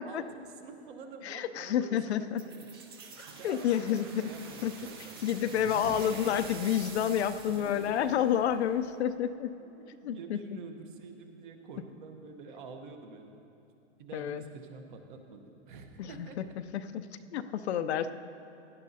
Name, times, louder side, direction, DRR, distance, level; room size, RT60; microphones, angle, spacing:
voice 1, 0.0-2.8 3.2-6.2 7.4-7.9 9.6-13.3 14.0-16.6, right 4 dB, 45° right, 5 dB, 0.9 m, -47 dB
voice 2, 1.2-2.4 3.4-4.3 4.6-4.7 5.2-9.5 10.0-10.4 14.1-14.4 16.0-16.4 16.7-18.1, left 9 dB, 60° left, 10 dB, 0.5 m, -29 dB
sound 1, 2.4-9.0, right 4 dB, 20° right, 0.4 m, -47 dB
16.5 x 11.5 x 2.7 m, 2.9 s
supercardioid pair, 165°, 36 cm